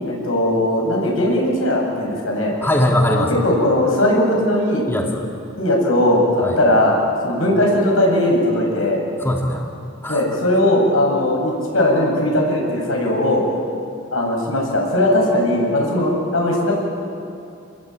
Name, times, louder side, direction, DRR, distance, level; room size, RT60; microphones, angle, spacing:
voice 1, 0.0-2.5 3.1-4.8 5.6-7.0 7.2-9.0 10.1-13.4 14.1-16.7, left 1 dB, 80° left, -1 dB, 7.9 m, -18 dB
voice 2, 2.6-3.4 4.9-5.3 6.4-6.6 9.2-9.7 10.0-10.2, left 1 dB, 10° left, 0 dB, 1.8 m, -20 dB
29.0 x 21.0 x 8.8 m, 2.6 s
head